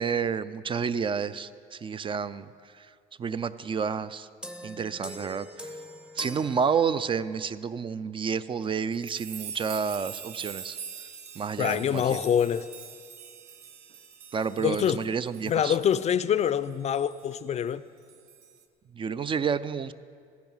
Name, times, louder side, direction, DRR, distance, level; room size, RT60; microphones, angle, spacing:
voice 1, 0.0-2.5 2.8-2.9 3.2-4.3 4.6-5.7 6.2-10.8 11.4-12.2 14.3-15.8 18.9-19.9, right 6 dB, 30° right, 15 dB, 0.3 m, -30 dB
sound 1, 4.4-7.4, equal, 5° right, 0.7 m, -42 dB
sound 2, 8.9-16.7 17.1-17.2 18.1-18.6, right 8 dB, 70° right, 1.0 m, -44 dB
voice 2, 11.6-12.7 14.6-15.1 15.5-17.8, left 9 dB, 40° left, 15 dB, 0.4 m, -25 dB
14.0 x 10.5 x 5.5 m, 2.2 s
cardioid pair, 110°, 17 cm